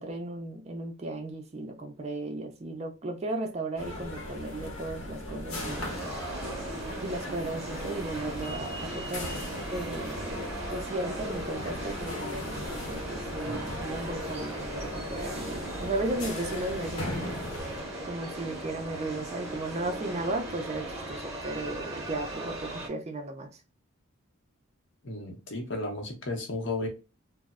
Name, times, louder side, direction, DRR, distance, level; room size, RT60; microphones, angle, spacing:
voice 1, 0.0-5.9 7.0-9.3 9.7-17.3 18.0-23.5, right 2 dB, 30° right, 0.4 m, -35 dB
sound 1, 3.8-17.8, left 1 dB, 90° left, 0.8 m, -39 dB
sound 2, 5.6-22.9, right 1 dB, 15° right, 0.8 m, -38 dB
voice 2, 25.0-26.9, left 2 dB, 60° left, 0.8 m, -34 dB
3.0 x 2.0 x 2.3 m
head